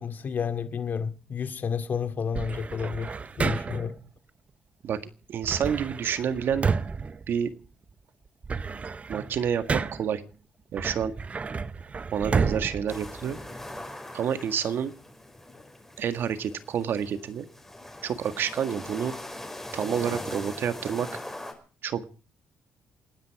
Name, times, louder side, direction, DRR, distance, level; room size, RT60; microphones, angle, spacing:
voice 1, 0.0-4.0, left 6 dB, 50° left, 2.2 m, -31 dB
sound 1, 2.3-4.0 5.4-7.9 8.3-10.2 10.7-13.8, right 5 dB, 35° right, 0.8 m, -31 dB
voice 2, 5.3-6.7 7.3-7.5 9.1-10.2 10.7-11.1 12.1-13.4 14.1-14.9 16.0-17.5 18.0-19.2 19.7-21.1 21.8-22.0, right 8 dB, 65° right, 1.8 m, -28 dB
sound 2, 12.9-21.5, left 1 dB, 10° left, 5.3 m, -41 dB
28.0 x 10.0 x 4.8 m
cardioid pair, 85°, 4 cm